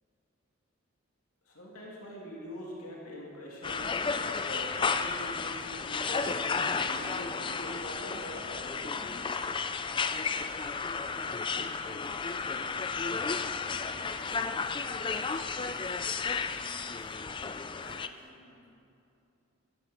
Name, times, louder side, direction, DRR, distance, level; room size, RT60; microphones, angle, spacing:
voice 1, 1.5-9.2, equal, 80° left, -4 dB, 2.5 m, -43 dB
sound 1, 3.6-18.1, left 5 dB, 20° left, 0.3 m, -33 dB
voice 2, 10.9-13.0 13.9-17.2 17.5-18.7, right 1 dB, 45° right, -6 dB, 3.5 m, -55 dB
14.0 x 12.5 x 5.4 m, 2.7 s
head